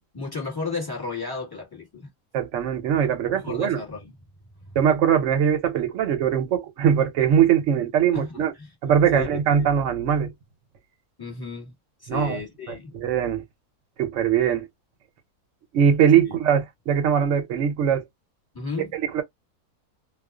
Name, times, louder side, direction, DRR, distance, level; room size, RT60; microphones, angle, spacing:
voice 1, 0.1-2.1 3.3-4.2 8.1-8.7 9.1-9.7 11.2-11.7 12.0-12.9 16.2-16.4 18.5-18.9, left 4 dB, 15° left, 1.1 m, -34 dB
voice 2, 2.3-3.8 4.8-8.5 8.8-10.3 12.1-12.4 12.7-13.4 14.0-14.7 15.7-18.0 18.9-19.2, right 8 dB, 60° right, 0.9 m, -21 dB
2.4 x 2.3 x 2.2 m
omnidirectional pair, 1.6 m